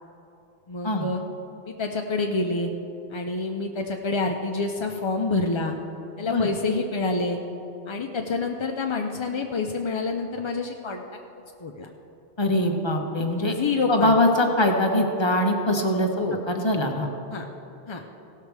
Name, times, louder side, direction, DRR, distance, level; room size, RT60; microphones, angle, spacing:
voice 1, 0.7-1.2 1.7-2.7 3.1-5.7 6.2-7.4 7.9-11.0 11.6-11.9 13.5-14.1 16.2-16.4 17.3-17.4 17.9-18.0, left 3 dB, 40° left, 2 dB, 0.4 m, -27 dB
voice 2, 12.4-13.6 13.9-16.1 16.5-17.1, left 1 dB, 25° left, 2 dB, 1.0 m, -22 dB
17.0 x 6.6 x 4.7 m, 2.9 s
omnidirectional pair, 1.2 m